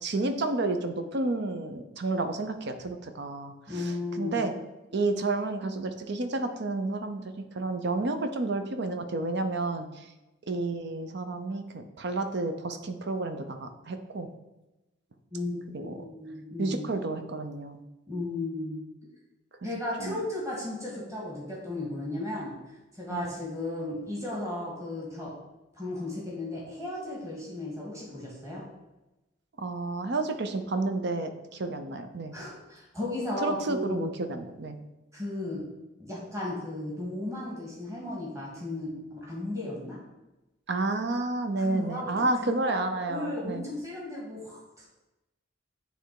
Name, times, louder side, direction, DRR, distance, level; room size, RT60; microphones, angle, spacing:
voice 1, 0.0-3.5 4.2-4.5 4.9-10.0 10.5-14.3 15.7-15.9 16.6-17.8 20.0-20.2 23.1-23.2 29.6-32.4 33.4-34.8 40.7-43.6, right 2 dB, 60° right, 8 dB, 0.7 m, -30 dB
voice 2, 3.7-4.4 15.3-16.9 18.1-18.8 19.6-25.3 25.7-28.6 32.3-34.1 35.1-35.6 36.0-40.0 41.6-42.1 42.4-42.7 43.1-44.9, left 2 dB, 15° right, -5 dB, 2.0 m, -35 dB
8.8 x 3.4 x 4.8 m, 1.0 s
head